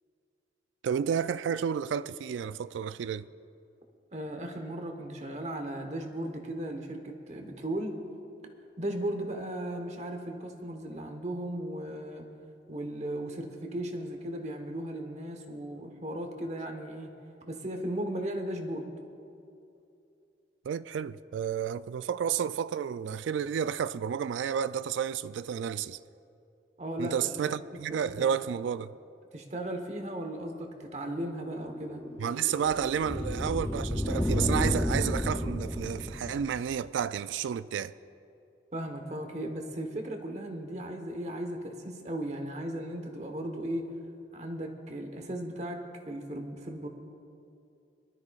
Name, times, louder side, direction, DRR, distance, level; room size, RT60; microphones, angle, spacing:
voice 1, 0.8-3.3 20.6-26.0 27.0-28.9 32.2-37.9, right 8 dB, 80° right, 0.3 m, -31 dB
voice 2, 4.1-8.0 8.8-12.3 12.7-17.2 17.5-18.9 26.8-27.4 27.9-28.3 29.3-32.0 38.7-43.9 44.3-46.9, right 1 dB, 35° right, 1.1 m, -36 dB
sound 1, 31.4-36.8, left 1 dB, 10° left, 0.5 m, -31 dB
22.0 x 12.5 x 2.4 m
head